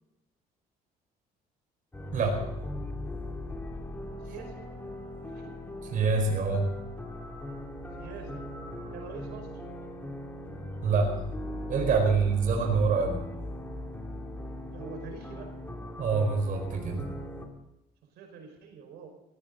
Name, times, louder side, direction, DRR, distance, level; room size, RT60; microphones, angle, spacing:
sound 1, 1.9-17.5, left 1 dB, 15° left, 3.1 m, -39 dB
voice 1, 2.1-2.5 5.9-6.7 10.8-11.1 11.7-13.2 16.0-17.1, right 4 dB, 50° right, 2 dB, 4.6 m, -26 dB
voice 2, 4.3-4.7 5.3-5.5 8.0-8.5 8.9-9.5 14.7-15.5 18.1-19.1, right 6 dB, 80° right, 4 dB, 5.3 m, -45 dB
18.0 x 16.5 x 4.0 m, 0.94 s
cardioid pair, 110°, 17 cm